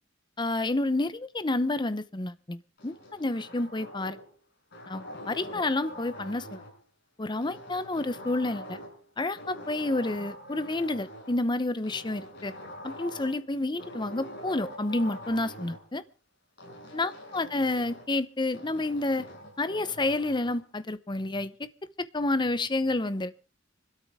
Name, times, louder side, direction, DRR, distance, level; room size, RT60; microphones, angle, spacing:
voice 1, 0.4-4.2 4.9-6.6 7.2-8.8 9.2-12.5 12.8-16.0 16.9-19.3 19.6-21.5 22.0-23.5, left 2 dB, 25° left, 13 dB, 0.8 m, -29 dB
sound 1, 2.8-4.3 4.7-6.8 7.4-9.1 9.4-11.4 11.8-13.4 13.8-15.8 16.6-18.1 18.5-20.6, equal, 60° left, 7.2 m, -44 dB
25.5 x 13.0 x 3.6 m, 0.36 s
head